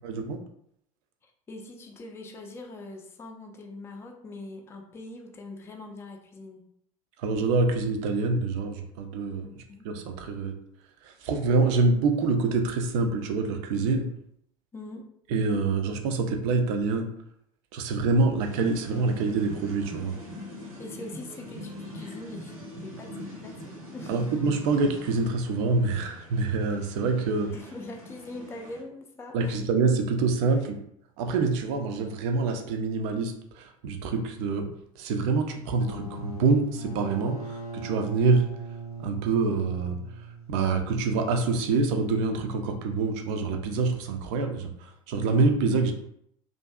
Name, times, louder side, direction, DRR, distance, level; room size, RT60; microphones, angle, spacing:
voice 1, 0.0-0.4 7.2-9.5 9.8-10.5 11.2-14.1 15.3-17.1 17.7-20.2 24.1-27.6 29.3-30.8 31.2-34.7 35.0-38.5 39.0-40.0 40.5-45.9, right 3 dB, 50° right, 5 dB, 0.5 m, -26 dB
voice 2, 1.2-6.7 9.4-9.9 14.7-15.1 20.8-22.6 22.8-24.4 27.5-29.6 45.1-45.4, left 2 dB, 15° left, 1 dB, 0.4 m, -43 dB
sound 1, 18.4-28.8, left 1 dB, 75° right, 0.9 m, -43 dB
sound 2, 35.6-41.1, right 2 dB, 90° left, 0.4 m, -40 dB
2.5 x 2.5 x 2.3 m, 0.70 s
figure-of-eight pair, 75°, 18 cm